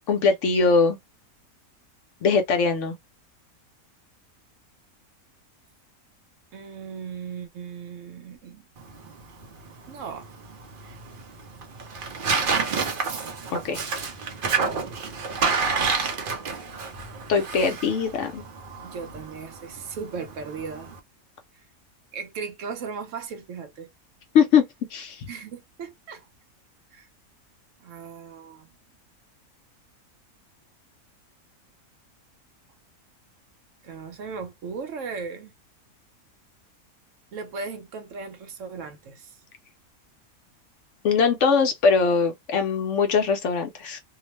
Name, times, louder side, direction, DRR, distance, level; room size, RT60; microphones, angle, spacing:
voice 1, 0.1-1.0 2.2-2.9 13.5-13.8 17.3-18.4 24.3-24.7 24.9-25.3 41.0-44.0, left 5 dB, 65° left, 0.8 m, -21 dB
voice 2, 6.5-8.6 9.9-10.3 18.8-20.9 21.5-21.6 22.1-23.9 25.3-26.3 26.9-27.1 27.8-28.7 33.8-35.5 37.3-39.4, right 5 dB, 70° right, 0.9 m, -37 dB
Tearing, 8.8-21.0, right 5 dB, 50° right, 0.7 m, -29 dB
2.8 x 2.0 x 3.0 m
omnidirectional pair, 1.5 m